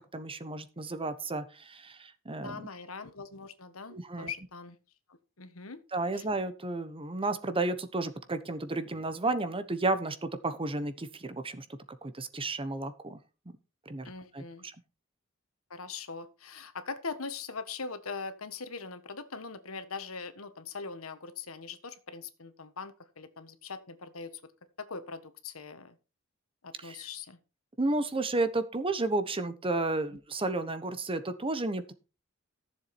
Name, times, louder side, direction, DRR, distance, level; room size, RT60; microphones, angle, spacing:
voice 1, 0.1-2.7 3.9-4.3 5.9-11.6 12.0-13.2 13.9-14.4 26.8-27.0 27.8-31.9, right 2 dB, 25° right, 10 dB, 1.1 m, -32 dB
voice 2, 2.4-4.8 5.1-5.8 6.1-6.3 14.0-14.6 15.7-24.4 24.8-26.0 26.6-27.4, left 4 dB, 80° left, 10 dB, 1.5 m, -41 dB
14.0 x 7.3 x 4.4 m, 0.32 s
head